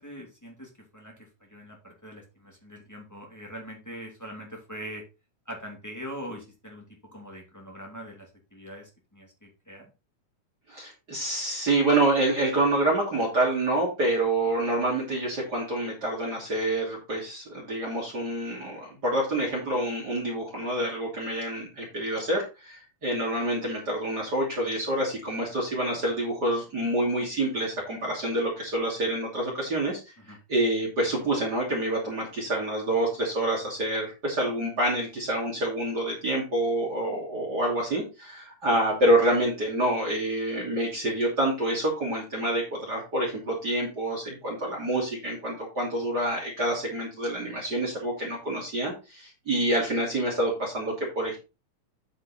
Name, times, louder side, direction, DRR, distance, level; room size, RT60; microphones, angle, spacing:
voice 1, 0.0-5.0 5.4-6.8 7.1-9.8 30.2-30.4, equal, 5° left, -2 dB, 2.7 m, -42 dB
voice 2, 10.7-30.0 30.3-51.4, right 1 dB, 35° right, -2 dB, 3.1 m, -27 dB
9.6 x 5.3 x 4.2 m, 0.29 s
omnidirectional pair, 3.5 m